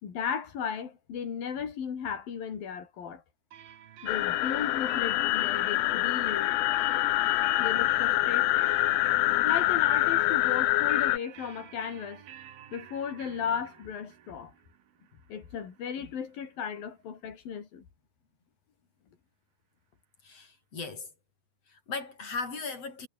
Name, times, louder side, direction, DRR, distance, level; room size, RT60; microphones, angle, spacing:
voice 1, 0.0-3.2 4.0-6.5 7.6-8.7 9.4-12.2 12.7-14.5 15.3-17.8, left 7 dB, 50° left, 5.0 m, -35 dB
sound 1, 3.5-17.1, right 10 dB, 55° right, 3.3 m, -50 dB
sound 2, 4.1-11.2, left 18 dB, 80° left, 2.4 m, -25 dB
voice 2, 20.2-21.1 21.7-23.1, left 4 dB, 30° left, 4.8 m, -37 dB
omnidirectional pair, 5.8 m